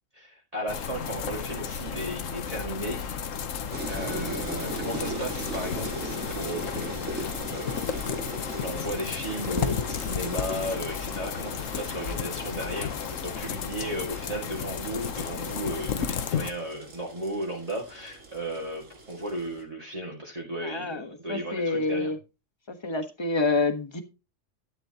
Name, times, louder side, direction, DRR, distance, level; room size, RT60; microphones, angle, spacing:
voice 1, 0.1-3.2 3.9-8.1 8.6-22.2, right 1 dB, 30° right, 2.2 m, -35 dB
sound 1, 0.7-16.5, left 7 dB, 85° left, 1.3 m, -33 dB
sound 2, 3.7-19.6, right 2 dB, 80° right, 2.4 m, -40 dB
voice 2, 20.6-22.2 22.7-24.0, left 3 dB, 20° left, 1.2 m, -28 dB
11.0 x 9.7 x 2.8 m
omnidirectional pair, 1.3 m